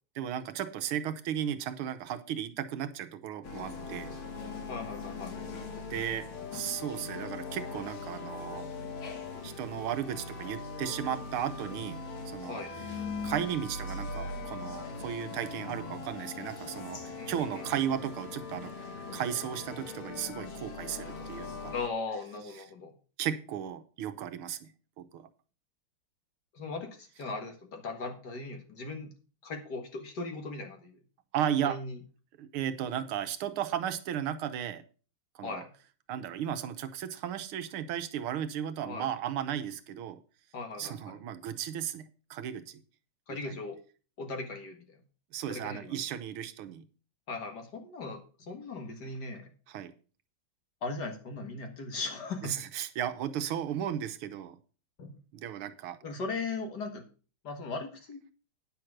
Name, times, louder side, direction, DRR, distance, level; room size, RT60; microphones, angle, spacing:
voice 1, 0.2-4.1 5.9-6.3 6.5-8.7 9.4-12.0 12.3-12.6 13.2-18.7 19.1-21.7 23.2-24.7 25.0-25.3 31.3-31.8 32.4-34.8 35.4-35.6 36.1-40.2 40.8-42.8 43.3-43.6 45.3-46.9 49.7-49.9 52.4-54.6 55.3-56.0, right 10 dB, 85° right, 9 dB, 1.7 m, -35 dB
sound 1, 3.4-21.9, left 4 dB, 85° left, 2.4 m, -40 dB
voice 2, 4.7-5.3 12.5-12.7 17.2-17.6 21.7-22.9 26.5-29.1 29.4-30.9 31.6-32.0 35.4-35.7 38.9-39.1 40.5-41.2 43.3-43.8 44.2-45.0 45.5-46.0 47.3-48.2 48.5-49.5 50.8-52.5 55.0-55.2 56.0-57.0 57.4-58.2, left 3 dB, 55° left, 4 dB, 2.1 m, -38 dB
9.6 x 6.0 x 6.4 m, 0.38 s
omnidirectional pair, 2.3 m